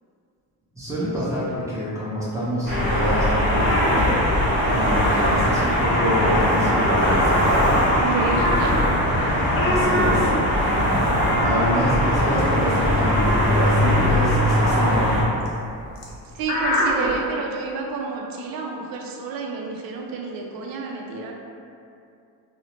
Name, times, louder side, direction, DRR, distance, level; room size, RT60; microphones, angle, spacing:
voice 1, 0.7-4.4 4.7-8.0 9.6-10.3 11.4-15.3, equal, 10° right, -9 dB, 0.7 m, -26 dB
sound 1, 2.7-15.2, equal, 30° right, 1.1 m, -20 dB
sound 2, 3.1-3.6 4.3-5.3 6.2-6.8 7.1-9.2 9.9-11.0 11.9-12.4 12.8-14.3, left 3 dB, 25° left, 0.3 m, -32 dB
sound 3, 3.3-4.8 5.1-5.3 5.6-6.7 7.0-17.1, left 1 dB, 80° left, 0.7 m, -27 dB
voice 2, 8.0-8.8 10.0-10.2 16.2-21.3, right 4 dB, 70° right, 0 dB, 0.5 m, -30 dB
2.7 x 2.1 x 3.0 m, 2.5 s
cardioid pair, 120°, 36 cm